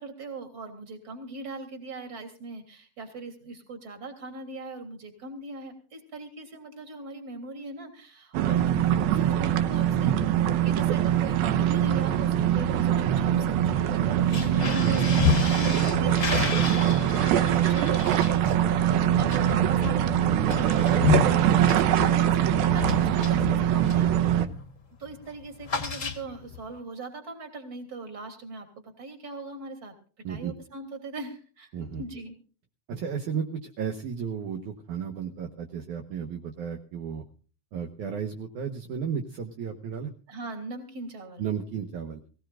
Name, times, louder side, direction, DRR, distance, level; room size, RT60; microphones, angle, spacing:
voice 1, 0.0-15.0 15.4-24.1 25.0-29.9 30.3-31.7 32.0-32.4 40.3-41.4, right 2 dB, 25° right, 4 dB, 3.3 m, -40 dB
sound 1, 8.3-24.5, right 10 dB, 85° right, 2.7 m, -23 dB
sound 2, 14.2-24.1 24.5-24.8 25.0-26.6, left 6 dB, 40° left, 1.0 m, -31 dB
voice 2, 14.8-15.1 30.2-30.5 31.7-32.0 32.9-37.2 37.7-40.1 41.4-42.2, right 7 dB, 65° right, 5 dB, 2.5 m, -33 dB
23.0 x 17.0 x 2.5 m, 0.39 s
omnidirectional pair, 4.2 m